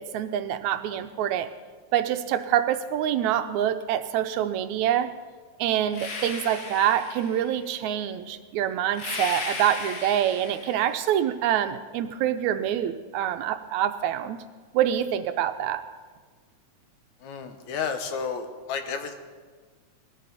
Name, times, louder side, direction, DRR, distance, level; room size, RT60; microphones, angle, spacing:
voice 1, 0.0-1.5 1.9-5.1 5.6-14.4 14.7-15.8, right 10 dB, 90° right, 10 dB, 2.1 m, -26 dB
sound 1, 5.9-7.6 8.9-11.0, left 3 dB, 65° left, 2.8 m, -36 dB
voice 2, 17.2-19.1, left 6 dB, 85° left, 7 dB, 2.5 m, -32 dB
20.0 x 14.0 x 4.0 m, 1.5 s
omnidirectional pair, 3.3 m